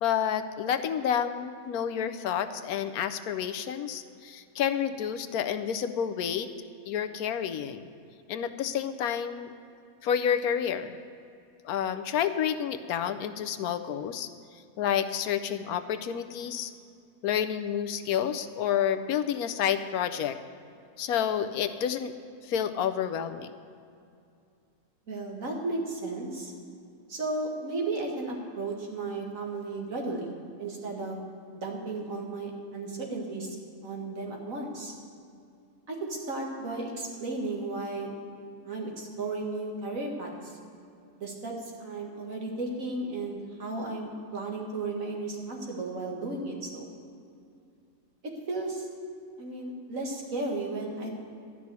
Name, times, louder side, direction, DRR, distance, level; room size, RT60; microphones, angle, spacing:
voice 1, 0.0-6.5 6.9-7.9 8.3-9.5 10.0-11.0 11.6-14.3 14.8-16.7 17.2-20.4 21.0-22.1 22.4-23.5, left 9 dB, 80° left, 10 dB, 1.1 m, -29 dB
voice 2, 25.1-26.5 27.1-31.2 31.5-33.6 33.8-34.9 35.9-38.1 38.6-40.5 41.2-46.9 48.2-48.9 49.4-51.1, right 2 dB, 60° right, -1 dB, 2.2 m, -34 dB
13.0 x 6.2 x 9.5 m, 2.5 s
omnidirectional pair, 1.6 m